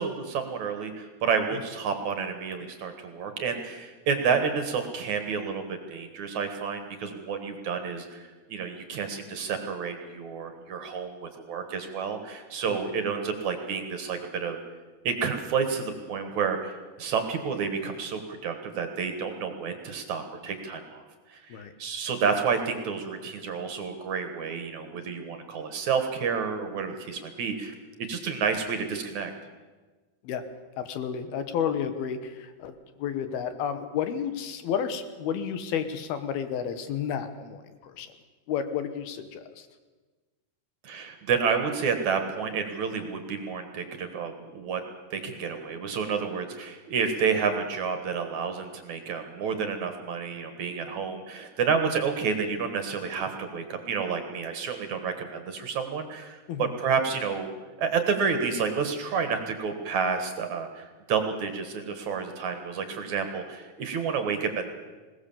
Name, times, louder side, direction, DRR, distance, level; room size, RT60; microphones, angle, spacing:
voice 1, 0.0-14.6 15.0-21.0 21.3-29.3 40.8-44.8 45.1-57.5 57.8-64.7, right 6 dB, 60° right, 7 dB, 2.4 m, -30 dB
voice 2, 30.8-32.7 33.0-38.1 38.5-39.7 56.5-56.7, left 8 dB, 80° left, 10 dB, 3.1 m, -31 dB
21.0 x 18.5 x 7.1 m, 1.3 s
omnidirectional pair, 4.5 m